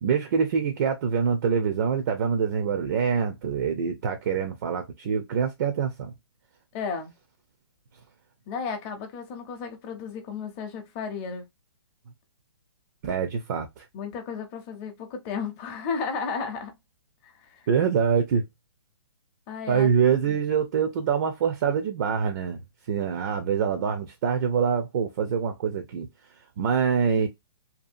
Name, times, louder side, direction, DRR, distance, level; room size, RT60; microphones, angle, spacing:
voice 1, 0.0-6.1 13.0-13.9 17.7-18.4 19.7-22.6 22.9-26.1 26.6-27.3, right 6 dB, 45° right, 0.4 m, -25 dB
voice 2, 6.7-7.1 8.5-11.4 13.9-16.8 17.2-17.7 19.5-19.9 20.2-20.5, left 5 dB, 25° left, 0.6 m, -34 dB
2.7 x 2.3 x 2.5 m
hypercardioid pair, 150°, 14 cm